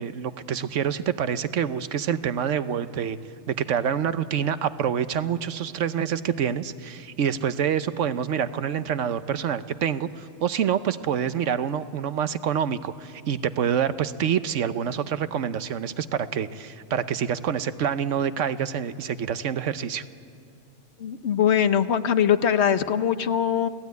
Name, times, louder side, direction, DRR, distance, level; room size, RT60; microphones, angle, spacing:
voice 1, 0.0-3.2 3.5-20.0, right 8 dB, 80° right, 12 dB, 1.1 m, -27 dB
voice 2, 21.0-23.7, left 8 dB, 65° left, 11 dB, 1.1 m, -22 dB
29.0 x 17.0 x 9.4 m, 2.4 s
omnidirectional pair, 1.3 m